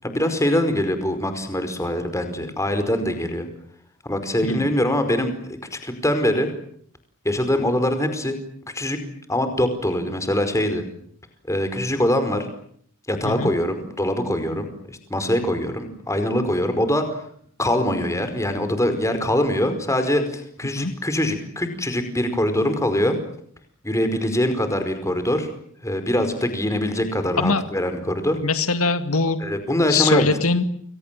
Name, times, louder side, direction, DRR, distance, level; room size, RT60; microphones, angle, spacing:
voice 1, 0.0-3.5 4.0-6.5 7.2-8.4 8.7-9.0 9.3-10.8 11.5-12.5 13.1-17.2 17.6-23.2 23.8-25.5 25.8-28.4 29.4-30.3, left 1 dB, 15° left, 8 dB, 5.0 m, -23 dB
voice 2, 28.4-29.4 29.9-30.6, left 4 dB, 85° left, 9 dB, 2.0 m, -22 dB
30.0 x 23.5 x 7.7 m, 0.65 s
head